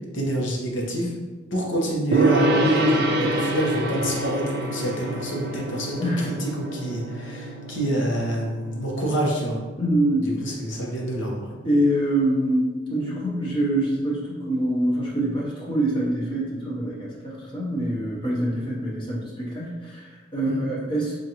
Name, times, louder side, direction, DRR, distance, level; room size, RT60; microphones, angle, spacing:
voice 1, 0.1-1.1 1.5-9.6 10.2-11.5 18.5-18.8 20.5-20.6, right 1 dB, 75° left, -2 dB, 0.9 m, -27 dB
Gong, 2.1-9.6, right 1 dB, 55° right, 0.4 m, -26 dB
voice 2, 6.0-6.3 9.8-10.3 11.6-21.1, right 1 dB, 25° left, -6 dB, 0.7 m, -25 dB
5.0 x 2.5 x 2.9 m, 1.3 s
head